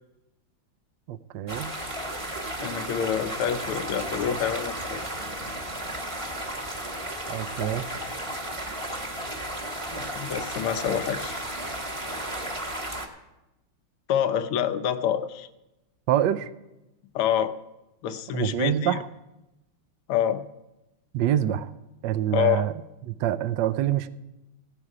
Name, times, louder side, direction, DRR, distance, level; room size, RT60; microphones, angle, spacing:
voice 1, 1.1-1.7 7.3-7.9 16.1-16.5 18.3-19.1 21.1-21.7 22.0-22.7 23.0-24.1, right 11 dB, 70° right, 13 dB, 1.1 m, -26 dB
sound 1, 1.5-13.1, right 1 dB, 15° right, 1.3 m, -34 dB
voice 2, 2.6-5.0 9.9-11.4 14.1-15.5 17.1-17.5 18.0-19.0 20.1-20.4 22.3-22.6, left 9 dB, 90° left, 10 dB, 1.7 m, -27 dB
16.0 x 11.0 x 4.9 m, 0.96 s
omnidirectional pair, 2.3 m